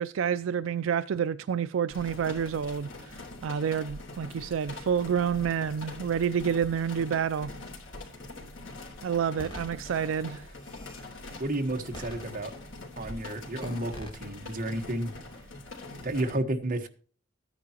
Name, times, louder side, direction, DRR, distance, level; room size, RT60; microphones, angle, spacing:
voice 1, 0.0-3.2 3.4-7.5 9.0-10.4, right 7 dB, 75° right, 0.4 m, -29 dB
sound 1, 1.9-16.4, left 2 dB, 75° left, 3.4 m, -44 dB
sound 2, 9.4-9.7 10.4-11.0 11.9-12.7 13.0-13.2 13.6-14.2, equal, 25° left, 3.0 m, -43 dB
voice 2, 11.4-12.5 12.9-15.1 16.0-16.9, right 1 dB, 45° right, 1.3 m, -31 dB
13.5 x 10.0 x 2.9 m
head